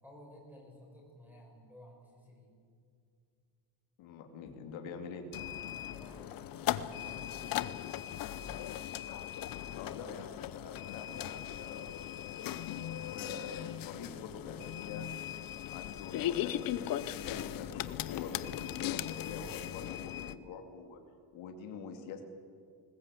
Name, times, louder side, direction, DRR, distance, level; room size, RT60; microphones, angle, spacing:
voice 1, 0.0-2.5 5.8-9.0, equal, 5° right, -1 dB, 6.2 m, -56 dB
voice 2, 4.0-5.2 9.8-12.0 13.0-15.1 15.7-21.0 21.3-22.2, left 5 dB, 75° left, 4 dB, 2.7 m, -46 dB
sound 1, 5.3-20.3, left 12 dB, 45° left, 0.8 m, -38 dB
21.0 x 20.0 x 8.4 m, 2.3 s
cardioid pair, 170°, 46 cm